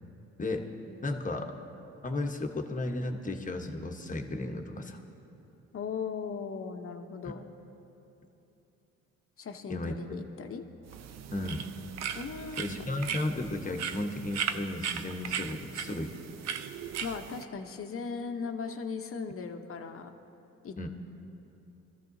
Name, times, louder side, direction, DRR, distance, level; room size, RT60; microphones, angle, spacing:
voice 1, 1.0-1.5 2.0-5.0 7.2-7.3 9.7-10.0 11.3-11.6 12.6-16.2 20.8-20.9, left 2 dB, 25° left, 3 dB, 1.1 m, -34 dB
voice 2, 5.7-7.4 9.4-10.6 12.1-12.8 17.0-20.1 20.6-20.9, left 5 dB, 45° left, 6 dB, 0.9 m, -38 dB
sound 1, 10.9-17.4, right 8 dB, 60° right, 0.6 m, -37 dB
21.0 x 14.0 x 2.7 m, 2.9 s
cardioid pair, 90°, 30 cm